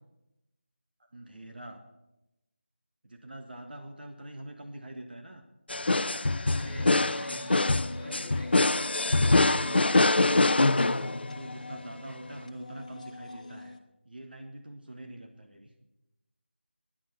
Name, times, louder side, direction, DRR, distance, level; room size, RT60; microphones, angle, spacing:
voice 1, 1.1-1.8 3.0-5.4 8.7-13.8 14.1-15.7, right 1 dB, 55° right, 4 dB, 1.6 m, -45 dB
sound 1, 5.7-11.5, left 2 dB, 60° left, 0.6 m, -24 dB
voice 2, 6.5-8.8, equal, 5° left, -7 dB, 5.5 m, -46 dB
sound 2, 6.6-13.8, left 2 dB, 40° left, 1.3 m, -45 dB
14.0 x 10.5 x 8.4 m, 0.94 s
figure-of-eight pair, 175°, 6 cm